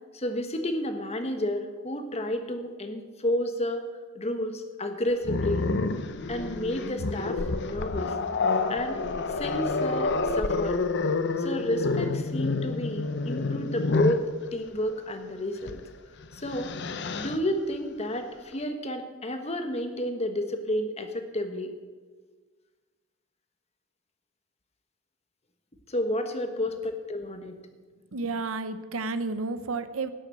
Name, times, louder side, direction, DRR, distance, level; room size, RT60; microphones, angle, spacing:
voice 1, 0.1-3.8 4.1-5.7 6.3-8.1 8.7-9.0 9.3-10.8 11.4-14.2 14.5-15.8 16.3-16.8 17.1-21.7 25.9-27.5, left 1 dB, 30° left, 7 dB, 1.3 m, -31 dB
Growling, 5.2-14.3 15.6-15.8 16.2-17.4, left 3 dB, 55° left, 0.7 m, -28 dB
voice 2, 28.1-30.1, right 3 dB, 70° right, 12 dB, 0.9 m, -31 dB
11.5 x 8.1 x 8.2 m, 1.4 s
head